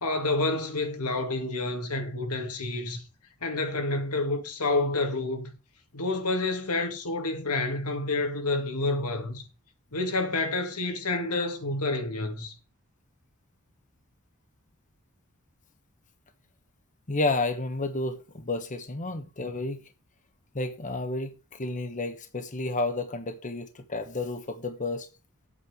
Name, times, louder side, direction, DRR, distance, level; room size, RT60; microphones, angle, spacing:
voice 1, 0.0-3.0 3.4-5.5 5.9-9.5 9.9-12.5, left 2 dB, 90° left, 2.1 m, -29 dB
voice 2, 17.1-19.8 20.5-25.1, left 2 dB, 35° left, 1.1 m, -31 dB
8.5 x 5.4 x 7.9 m
head